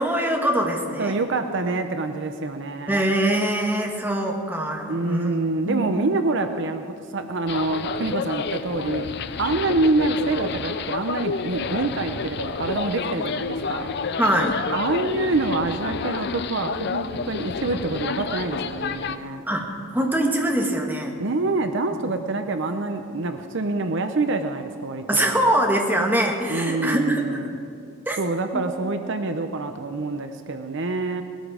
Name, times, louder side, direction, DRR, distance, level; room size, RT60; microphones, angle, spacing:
voice 1, 0.0-1.2 2.9-5.3 5.6-6.0 14.2-14.5 19.5-21.2 25.1-27.4 28.1-28.2 28.5-28.6, right 1 dB, 10° right, 1 dB, 1.4 m, -23 dB
voice 2, 1.0-3.0 4.9-9.0 9.4-13.9 14.7-19.4 21.2-25.4 26.5-27.6 28.2-31.2, right 2 dB, 55° right, 7 dB, 0.7 m, -26 dB
sound 1, 7.5-19.2, left 5 dB, 50° left, 0.5 m, -30 dB
19.0 x 13.0 x 5.0 m, 2.4 s
head